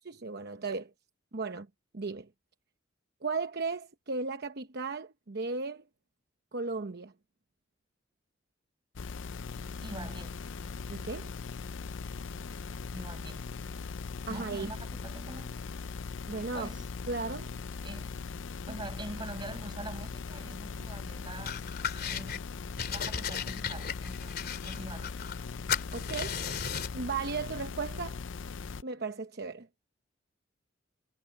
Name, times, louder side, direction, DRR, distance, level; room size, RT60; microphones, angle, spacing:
voice 1, 0.0-0.9 1.3-1.7 1.9-2.3 3.2-5.8 6.5-7.1 10.9-11.3 14.3-14.7 16.3-16.7 17.1-17.5 25.9-26.4 26.9-28.2 28.8-29.7, right 4 dB, 55° right, 0.9 m, -35 dB
sound 1, 9.0-28.8, left 4 dB, 75° left, 0.5 m, -40 dB
voice 2, 9.8-10.4 12.9-13.5 14.3-15.6 16.5-16.9 17.8-18.3 18.7-21.7 21.9-22.5 22.9-25.2, right 1 dB, 25° right, 5.9 m, -44 dB
sound 2, 21.5-22.4 22.8-25.4 25.7-27.0, left 7 dB, 55° left, 3.2 m, -35 dB
head